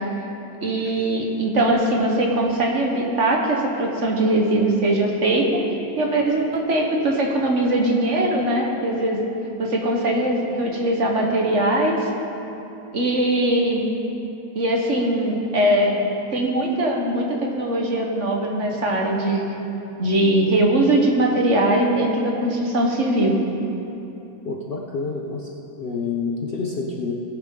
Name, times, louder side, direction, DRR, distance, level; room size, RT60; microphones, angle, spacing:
voice 1, 0.6-5.6 6.0-9.2 9.6-12.0 12.9-13.9 14.5-16.0 16.3-19.4 20.0-23.4, right 1 dB, 50° right, 0 dB, 1.5 m, -21 dB
voice 2, 24.4-25.5 25.8-27.1, left 4 dB, 45° left, -1 dB, 0.8 m, -28 dB
17.5 x 9.6 x 3.8 m, 3.0 s
omnidirectional pair, 1.7 m